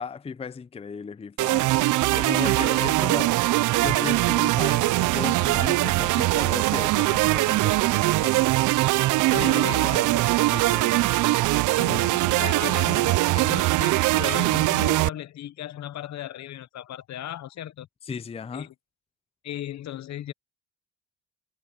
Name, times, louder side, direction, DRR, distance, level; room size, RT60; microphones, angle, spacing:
voice 1, 0.0-1.7 2.1-3.4 3.8-8.5 9.4-11.3 18.1-18.7, left 5 dB, 20° left, 0.5 m, -36 dB
sound 1, 1.4-15.1, right 18 dB, 80° right, 0.5 m, -22 dB
voice 2, 9.3-10.3 11.8-17.9 18.5-18.7 19.4-20.3, left 12 dB, 65° left, 0.9 m, -36 dB
cardioid pair, 90°, 30 cm